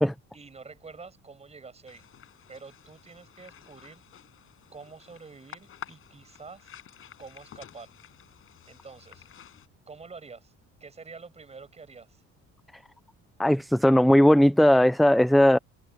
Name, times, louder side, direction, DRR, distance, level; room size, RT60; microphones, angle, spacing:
voice 1, 0.3-2.0 2.5-4.0 4.7-6.8 7.2-7.9 8.7-9.3 9.9-10.5 10.8-12.2, right 4 dB, 20° right, 6.9 m, -47 dB
sound 1, 1.9-9.7, left 9 dB, 45° left, 6.9 m, -50 dB
voice 2, 13.4-15.6, equal, ahead, 0.4 m, -18 dB
cardioid pair, 135°, 30 cm